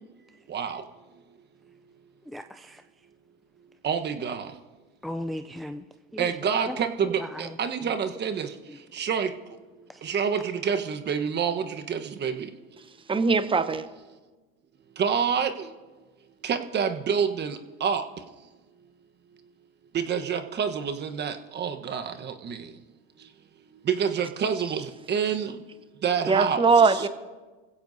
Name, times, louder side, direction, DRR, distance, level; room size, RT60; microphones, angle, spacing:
voice 1, 0.5-0.8 3.8-4.5 6.2-8.5 8.9-9.3 10.0-12.5 15.0-15.7 16.4-18.0 19.9-22.6 23.9-25.5 26.0-27.1, right 7 dB, 35° right, 7 dB, 1.3 m, -27 dB
voice 2, 2.3-2.8 5.0-5.8 6.1-6.3 6.7-6.8 7.2-7.4 9.9-10.0, left 1 dB, ahead, 8 dB, 0.4 m, -36 dB
voice 3, 13.1-13.9 26.3-27.1, right 4 dB, 15° right, 12 dB, 1.0 m, -21 dB
26.5 x 16.0 x 2.8 m, 1.3 s
hypercardioid pair, 90°, 31 cm